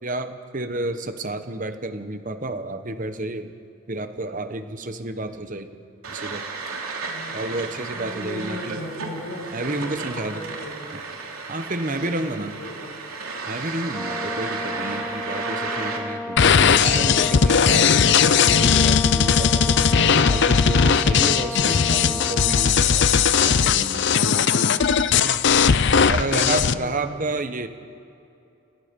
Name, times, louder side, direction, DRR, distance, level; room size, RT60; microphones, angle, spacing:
voice 1, 0.0-3.5 3.9-5.7 6.1-6.5 7.3-8.8 9.5-10.5 11.5-12.6 13.5-19.8 20.3-24.4 25.1-25.5 26.1-27.7, right 2 dB, 35° right, 9 dB, 1.0 m, -31 dB
sound 1, 6.0-16.0, right 4 dB, 75° right, 3.0 m, -33 dB
voice 2, 7.0-7.3 7.8-10.7 11.9-13.0 26.1-26.3 26.6-27.2, left 1 dB, 70° left, -2 dB, 7.1 m, -37 dB
Brass instrument, 13.9-22.8, left 2 dB, 5° left, 0.5 m, -33 dB
sound 2, 16.4-26.7, left 6 dB, 55° left, 0.6 m, -18 dB
30.0 x 18.5 x 5.3 m, 2.6 s
head